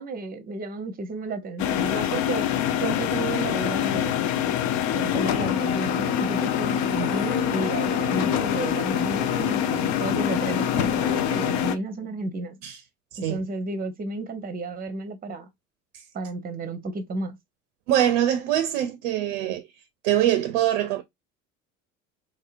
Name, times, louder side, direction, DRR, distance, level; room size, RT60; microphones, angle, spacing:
voice 1, 0.0-2.5 2.8-4.3 4.9-12.6 13.2-15.5 16.1-17.4, right 3 dB, 25° right, 0.8 m, -32 dB
sound 1, 1.6-11.8, left 10 dB, 50° left, 0.5 m, -25 dB
voice 2, 17.9-19.7 20.0-21.0, right 11 dB, 70° right, 0.5 m, -23 dB
3.1 x 2.7 x 2.4 m
hypercardioid pair, 65°, 37 cm